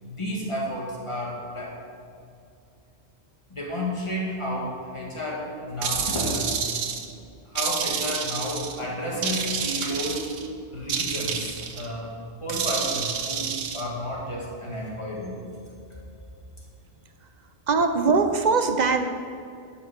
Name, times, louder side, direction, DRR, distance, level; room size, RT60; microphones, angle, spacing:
voice 1, 0.0-1.8 3.5-6.6 7.5-10.3 10.7-12.1 12.4-15.4 15.9-16.3, equal, 25° left, -4 dB, 2.1 m, -31 dB
Angry spider monster, 5.8-7.1 7.6-8.8 9.2-10.5 10.9-11.9 12.5-13.8, right 7 dB, 85° right, 1.0 m, -29 dB
voice 2, 17.7-19.0, right 4 dB, 45° right, 7 dB, 0.7 m, -21 dB
11.0 x 5.3 x 6.0 m, 2.4 s
omnidirectional pair, 1.1 m